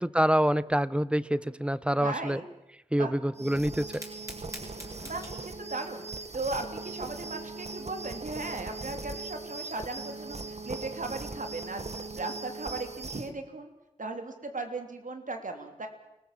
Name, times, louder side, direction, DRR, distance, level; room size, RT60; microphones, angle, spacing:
voice 1, 0.0-2.4 2.9-4.0, equal, 10° right, 17 dB, 1.0 m, -26 dB
voice 2, 2.0-2.5 3.0-3.1 5.0-13.7 14.0-15.9, right 3 dB, 80° right, 5 dB, 3.1 m, -37 dB
sound 1, 3.3-13.3, right 3 dB, 55° right, 1.6 m, -40 dB
Fire, 3.8-12.6, equal, 25° right, 7.0 m, -51 dB
29.5 x 20.0 x 7.5 m, 0.91 s
wide cardioid pair, 50°, 13 cm